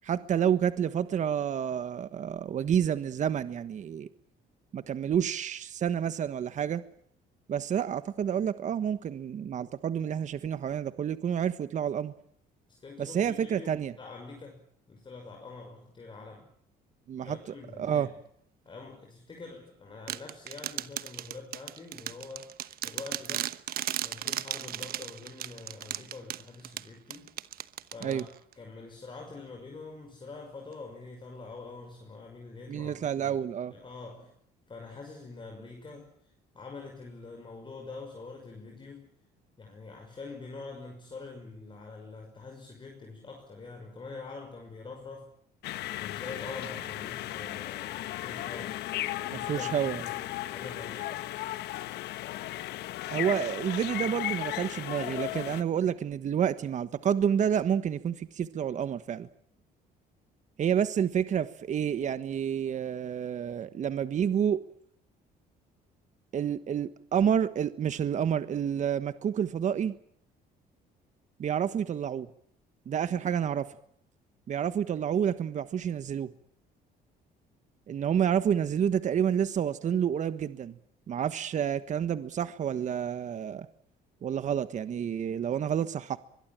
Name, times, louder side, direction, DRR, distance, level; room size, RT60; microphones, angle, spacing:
voice 1, 0.0-4.1 4.7-6.8 7.5-12.1 13.0-13.9 17.1-17.4 17.8-18.1 28.0-28.2 32.7-33.7 49.3-50.0 53.1-59.3 60.6-64.6 66.3-69.9 71.4-72.3 72.9-73.7 74.5-76.3 77.9-80.7 81.1-83.7 84.2-86.2, right 8 dB, 45° right, 1.4 m, -29 dB
voice 2, 12.7-14.6 14.9-16.5 17.2-18.2 18.6-22.5 22.8-23.5 24.0-27.3 27.9-33.4 33.7-34.3 34.7-39.1 39.6-45.3 46.0-48.8 49.2-50.2 50.5-51.3, left 3 dB, 30° left, 6.2 m, -45 dB
sound 1, 20.1-28.5, right 12 dB, 60° right, 1.1 m, -36 dB
sound 2, 45.6-55.6, left 15 dB, 80° left, 1.3 m, -35 dB
23.5 x 22.0 x 8.9 m
cardioid pair, 110°, 17 cm